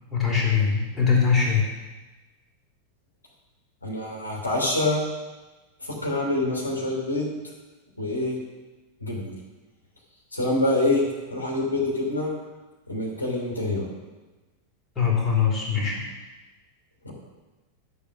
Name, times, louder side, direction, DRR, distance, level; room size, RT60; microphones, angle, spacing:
voice 1, 0.1-1.6 14.9-16.0, left 6 dB, 15° left, -3 dB, 3.3 m, -22 dB
voice 2, 3.8-5.0 5.8-7.3 8.0-8.4 9.0-9.3 10.3-12.3 12.9-13.9 17.0-17.1, left 2 dB, 85° left, -3 dB, 3.2 m, -26 dB
12.0 x 7.1 x 6.0 m, 1.2 s
figure-of-eight pair, 90°, 0 cm